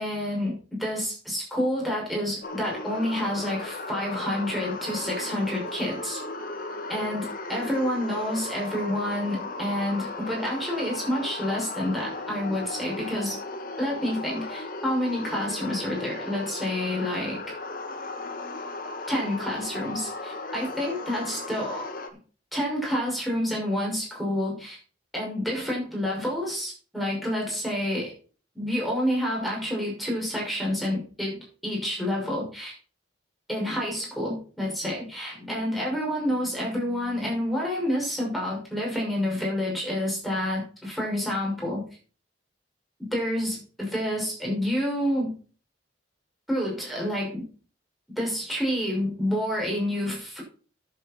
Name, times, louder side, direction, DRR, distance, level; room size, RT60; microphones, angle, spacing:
voice 1, 0.0-6.2 6.9-13.4 13.8-17.4 19.1-21.9 22.5-24.8 25.1-28.1 28.5-32.7 33.5-41.8 43.1-45.3 46.5-47.5 48.2-50.4, equal, ahead, -4 dB, 6.0 m, -28 dB
sound 1, 2.4-22.1, left 3 dB, 50° left, 1.4 m, -36 dB
12.0 x 7.9 x 4.4 m, 0.39 s
head